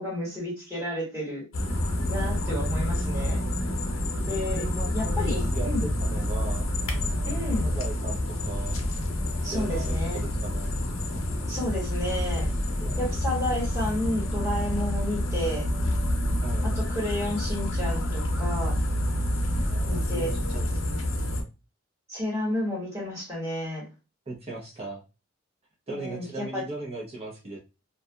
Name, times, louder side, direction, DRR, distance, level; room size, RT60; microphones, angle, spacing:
voice 1, 0.0-1.4 2.1-3.4 4.3-4.6 4.9-5.9 7.2-7.7 9.4-10.2 11.5-12.5 13.0-15.7 16.6-18.8 19.9-20.3 22.1-23.9 25.9-26.7, left 1 dB, 15° right, 1.3 m, -31 dB
sound 1, 1.5-21.4, left 1 dB, 75° left, 0.6 m, -28 dB
voice 2, 2.1-2.4 4.5-6.6 7.6-8.8 9.5-10.7 11.1-11.2 12.8-13.1 16.4-16.7 19.7-20.7 24.3-25.0 25.9-27.6, right 3 dB, 30° right, 0.6 m, -38 dB
2.6 x 2.4 x 2.2 m
head